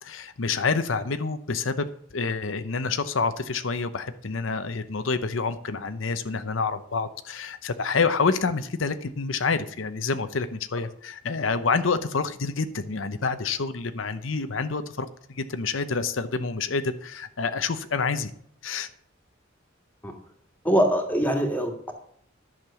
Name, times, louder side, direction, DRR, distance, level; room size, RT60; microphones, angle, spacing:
voice 1, 0.0-1.9 2.1-18.3 18.6-18.9, left 4 dB, 85° left, 10 dB, 0.8 m, -28 dB
voice 2, 20.6-21.9, equal, 10° left, 2 dB, 2.0 m, -23 dB
11.0 x 6.7 x 6.9 m, 0.66 s
head